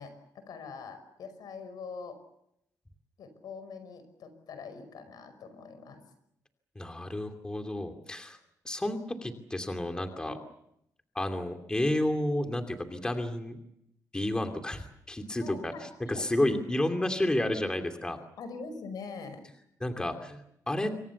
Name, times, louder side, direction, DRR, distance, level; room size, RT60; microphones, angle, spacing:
voice 1, 0.0-2.2 3.2-6.0 10.2-10.4 15.4-16.2 18.4-19.4, left 4 dB, 90° left, 10 dB, 5.5 m, -43 dB
voice 2, 6.8-8.4 8.6-10.4 11.1-13.6 14.1-15.7 16.1-18.2 19.8-20.9, left 1 dB, 10° left, 5 dB, 2.6 m, -31 dB
27.5 x 24.0 x 7.1 m, 0.78 s
wide cardioid pair, 150°, 7 cm